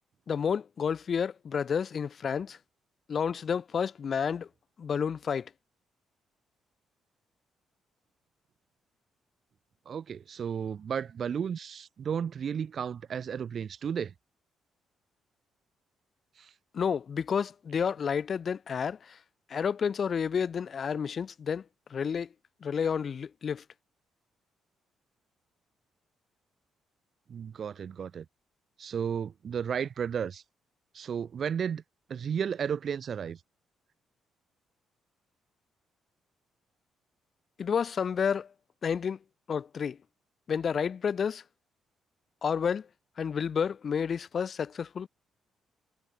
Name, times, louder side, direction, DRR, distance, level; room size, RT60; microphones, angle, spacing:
voice 1, 0.3-2.6 3.1-4.5 4.8-5.5 16.7-19.2 19.5-21.6 21.9-22.3 22.6-23.6 37.6-38.5 38.8-39.2 39.5-40.0 40.5-41.4 42.4-42.9 43.2-45.1, left 7 dB, 50° left, 0.3 m, -30 dB
voice 2, 9.9-14.1 16.4-16.5 27.3-28.2 28.8-30.4 30.9-31.8 32.1-33.4, right 7 dB, 55° right, 1.2 m, -33 dB
cardioid pair, 90°, 0 cm